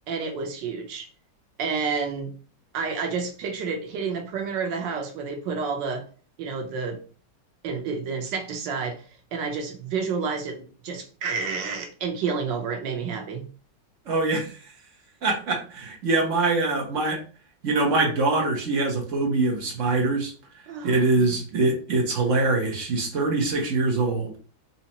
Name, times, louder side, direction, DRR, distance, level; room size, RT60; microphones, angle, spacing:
voice 1, 0.1-1.1 1.6-2.3 2.7-6.1 6.4-7.0 7.6-9.0 9.3-10.6 10.8-13.5 20.7-21.3, right 5 dB, 80° right, 3 dB, 1.5 m, -29 dB
voice 2, 14.1-14.6 15.2-17.2 17.6-24.3, right 3 dB, 50° right, 1 dB, 1.1 m, -24 dB
4.1 x 2.8 x 2.8 m, 0.38 s
omnidirectional pair, 1.9 m